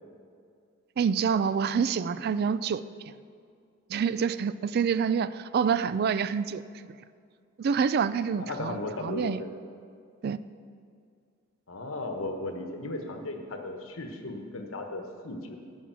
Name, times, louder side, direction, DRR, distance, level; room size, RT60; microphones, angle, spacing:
voice 1, 1.0-2.9 3.9-7.0 7.6-9.4 10.2-10.4, right 6 dB, 50° right, 15 dB, 0.3 m, -27 dB
voice 2, 8.4-9.5 11.7-15.6, left 2 dB, 90° left, 4 dB, 1.2 m, -36 dB
11.0 x 7.4 x 6.1 m, 2.3 s
head